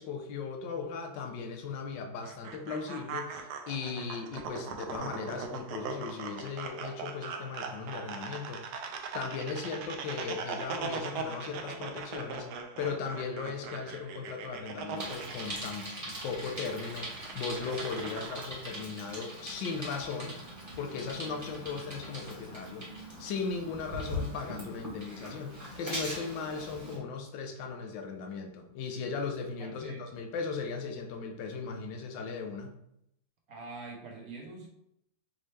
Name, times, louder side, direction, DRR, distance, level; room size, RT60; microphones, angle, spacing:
voice 1, 0.0-8.7 9.1-20.4 20.8-32.8, left 5 dB, 70° left, 4 dB, 1.4 m, -37 dB
sound 1, 2.2-18.5, right 5 dB, 70° right, 1.0 m, -40 dB
Bicycle, 15.0-27.0, equal, 10° right, 1.1 m, -41 dB
voice 2, 29.6-30.1 33.5-34.7, right 3 dB, 55° right, -1 dB, 1.3 m, -44 dB
5.4 x 2.8 x 3.2 m, 0.77 s
omnidirectional pair, 2.1 m